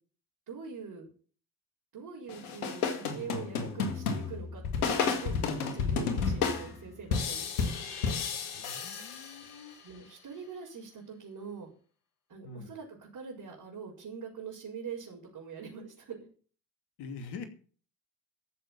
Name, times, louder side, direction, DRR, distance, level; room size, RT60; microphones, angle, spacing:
voice 1, 0.5-1.1 1.9-7.7 9.8-11.7 12.3-16.2, right 6 dB, 50° right, -4 dB, 5.1 m, -44 dB
sound 1, 2.3-9.7, left 5 dB, 85° left, 2.0 m, -32 dB
voice 2, 8.5-9.8 12.4-12.7 17.0-17.5, left 5 dB, 60° left, 7 dB, 2.7 m, -44 dB
14.5 x 6.8 x 7.3 m, 0.42 s
hypercardioid pair, 50°, 44 cm